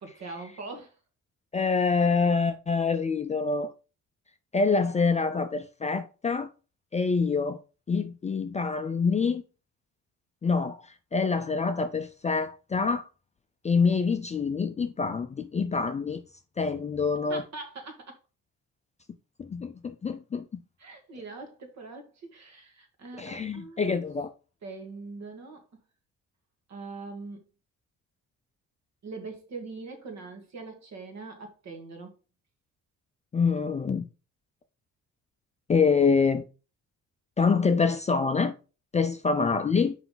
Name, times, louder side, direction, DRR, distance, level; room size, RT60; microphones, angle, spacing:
voice 1, 0.0-0.9 17.3-18.2 20.8-24.0 24.6-25.6 26.7-27.4 29.0-32.2, right 3 dB, 55° right, 1.8 m, -42 dB
voice 2, 1.5-3.7 4.5-6.5 6.9-7.6 7.9-9.4 10.4-13.1 13.6-16.2 16.6-17.4 19.4-20.6 23.2-24.3 33.3-34.1 35.7-36.4 37.4-38.5 38.9-39.9, left 5 dB, 20° left, 0.4 m, -26 dB
5.7 x 5.1 x 3.8 m
cardioid pair, 135°, 32 cm